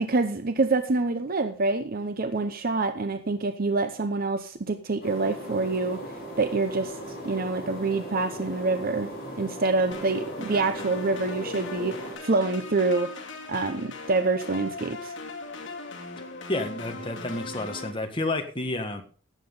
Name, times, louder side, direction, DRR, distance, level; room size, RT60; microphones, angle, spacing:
voice 1, 0.0-6.0 6.4-7.0 7.2-9.1 9.4-13.1 13.5-15.1, right 3 dB, 45° right, 0.8 m, -26 dB
sound 1, 5.0-12.2, right 1 dB, 45° left, 6.9 m, -38 dB
sound 2, 9.9-17.9, left 3 dB, 65° left, 2.5 m, -39 dB
voice 2, 16.5-19.0, left 2 dB, 25° left, 1.6 m, -30 dB
17.0 x 7.7 x 3.9 m
head